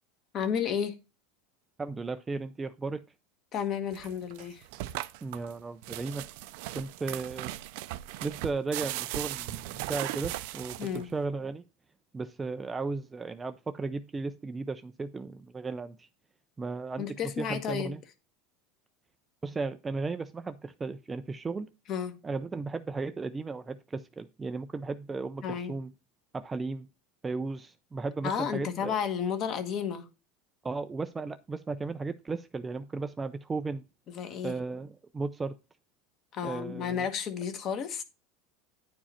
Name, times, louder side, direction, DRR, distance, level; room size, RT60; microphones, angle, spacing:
voice 1, 0.3-0.9 3.5-4.6 10.8-11.1 17.0-17.9 21.9-22.2 25.4-25.7 28.2-30.1 34.1-34.6 36.3-38.0, left 7 dB, 35° left, 1.2 m, -32 dB
voice 2, 1.8-3.0 5.2-6.2 6.8-7.5 8.2-10.8 11.1-11.6 12.1-16.1 16.6-18.0 19.4-21.7 22.2-25.9 26.3-26.9 27.2-29.0 30.6-33.8 34.4-35.6 36.4-37.1, right 3 dB, 10° right, 0.4 m, -35 dB
sound 1, 3.9-11.2, right 16 dB, 65° right, 0.5 m, -38 dB
10.0 x 4.8 x 4.2 m
supercardioid pair, 170°, 0 cm